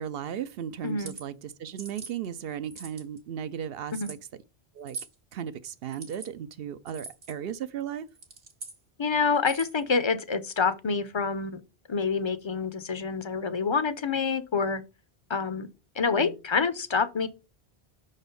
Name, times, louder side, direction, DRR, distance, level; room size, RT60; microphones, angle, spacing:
voice 1, 0.0-4.2 4.8-5.0 5.3-8.1 16.1-16.4, right 9 dB, 70° right, 0.7 m, -36 dB
sound 1, 0.9-1.2 1.8-2.1 2.6-3.2 3.9-4.2 4.9-5.2 5.9-6.3 6.9-7.3 8.1-8.8 9.4-9.8, right 4 dB, 85° right, 1.6 m, -42 dB
voice 2, 9.0-11.6 11.9-14.8 15.3-15.7 16.0-17.3, left 5 dB, 35° left, 0.5 m, -27 dB
5.9 x 4.1 x 5.3 m
omnidirectional pair, 1.1 m